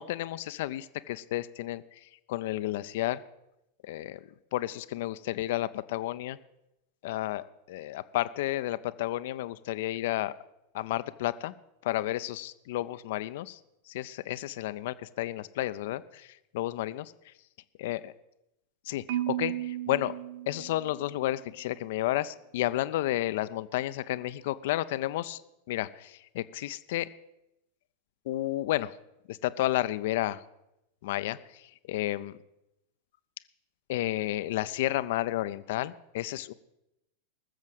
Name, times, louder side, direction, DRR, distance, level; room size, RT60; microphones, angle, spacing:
voice 1, 0.0-2.0 2.3-3.2 3.8-4.2 4.5-6.4 7.0-10.3 10.7-11.5 11.8-13.6 13.9-17.1 17.8-18.1 18.9-20.2 20.5-25.4 25.7-27.1 28.3-28.9 29.3-30.4 31.0-32.4 33.9-36.5, left 15 dB, 55° left, 15 dB, 0.6 m, -32 dB
Marimba xylophone, 19.1-21.3, right 13 dB, 50° right, 0.5 m, -34 dB
19.5 x 7.3 x 7.8 m, 0.88 s
figure-of-eight pair, 90°, 0 cm